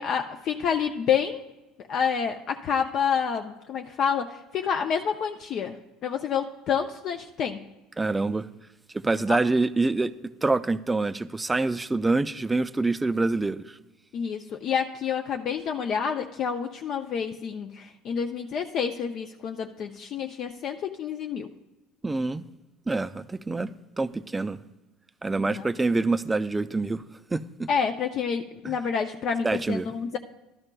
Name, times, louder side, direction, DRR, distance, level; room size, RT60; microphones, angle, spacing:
voice 1, 0.0-1.4 1.9-5.8 6.0-7.6 9.3-9.4 14.1-21.5 27.7-30.2, left 7 dB, 55° left, 0.4 m, -28 dB
voice 2, 8.0-8.5 8.9-10.1 10.4-13.8 22.0-22.4 22.9-23.7 24.0-24.6 25.2-27.0 27.3-27.7 28.6-28.8 29.4-29.9, right 3 dB, 15° right, 0.3 m, -26 dB
12.0 x 12.0 x 2.2 m
supercardioid pair, 95°, 0 cm